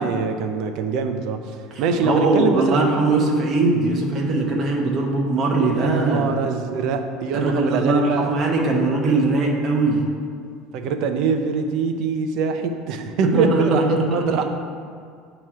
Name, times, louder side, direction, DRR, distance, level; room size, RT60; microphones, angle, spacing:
voice 1, 0.0-2.8 5.7-8.3 10.7-14.4, right 5 dB, 55° right, 6 dB, 0.5 m, -24 dB
voice 2, 1.7-6.3 7.3-10.0 13.2-14.4, right 3 dB, 30° right, -1 dB, 0.9 m, -20 dB
8.8 x 3.0 x 4.8 m, 2.1 s
cardioid pair, 160°, 0 cm